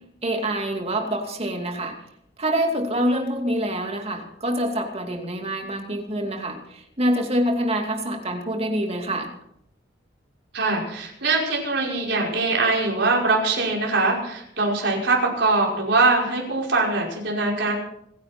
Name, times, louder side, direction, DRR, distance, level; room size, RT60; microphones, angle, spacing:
voice 1, 0.2-2.0 2.4-9.3, right 1 dB, 35° right, 3 dB, 2.7 m, -26 dB
voice 2, 10.5-17.7, right 3 dB, 65° right, -2 dB, 5.3 m, -22 dB
27.0 x 10.5 x 4.4 m, 0.73 s
head